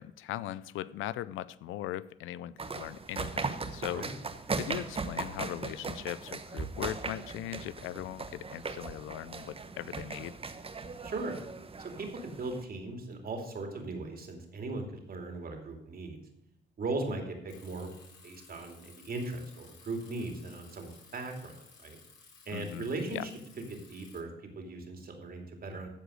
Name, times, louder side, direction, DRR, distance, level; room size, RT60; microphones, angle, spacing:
voice 1, 0.0-4.0 4.6-10.3 22.5-23.3, left 13 dB, 90° left, 18 dB, 0.5 m, -39 dB
sound 1, 2.6-12.6, right 4 dB, 30° right, 1.1 m, -38 dB
voice 2, 11.0-11.3 11.8-16.2 16.8-17.9 18.2-22.0 22.5-23.3 23.6-24.3 24.5-25.9, right 2 dB, 50° right, 3 dB, 2.7 m, -38 dB
Bicycle, 17.5-24.2, left 4 dB, 60° left, 4.4 m, -57 dB
14.5 x 5.1 x 6.3 m, 0.86 s
cardioid pair, 90°, 20 cm